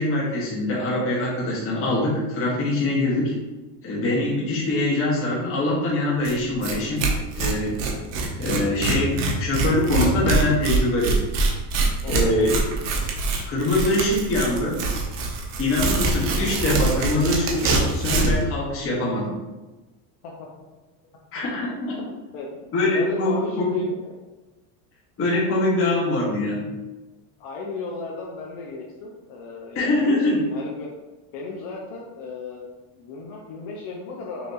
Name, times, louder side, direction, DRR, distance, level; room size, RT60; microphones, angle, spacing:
voice 1, 0.0-3.3 3.8-7.1 7.3-7.8 8.4-11.2 12.1-12.6 13.5-14.8 15.6-19.3 21.3-21.9 22.7-23.8 25.2-26.7 29.7-30.4, left 2 dB, 25° left, -4 dB, 1.1 m, -23 dB
Tearing, 6.2-6.3 6.6-6.7 7.0-18.4, right 3 dB, 65° right, 1.0 m, -24 dB
voice 2, 12.0-12.5 20.2-20.5 21.9-22.0 22.3-24.1 27.4-30.9 31.3-32.7 32.9-34.5, left 3 dB, 55° left, -2 dB, 0.8 m, -34 dB
5.8 x 2.8 x 2.6 m, 1.1 s
cardioid pair, 165°, 49 cm